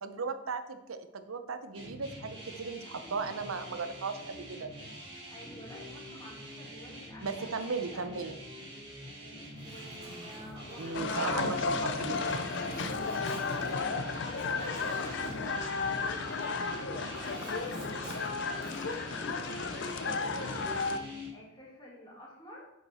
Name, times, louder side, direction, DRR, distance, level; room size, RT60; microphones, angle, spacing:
voice 1, 0.0-4.7 7.2-8.4 10.8-12.2, right 4 dB, 90° right, 9 dB, 0.8 m, -36 dB
sound 1, 1.7-21.3, equal, 25° right, 2.7 m, -46 dB
voice 2, 5.3-8.2 9.6-11.5 12.6-22.7, equal, 20° left, -4 dB, 2.1 m, -51 dB
Zipper (clothing), 9.4-16.6 16.8-19.0, right 1 dB, 55° right, 2.7 m, -49 dB
sound 2, 10.9-21.0, left 4 dB, 60° left, 0.6 m, -33 dB
7.4 x 7.2 x 4.3 m, 0.94 s
head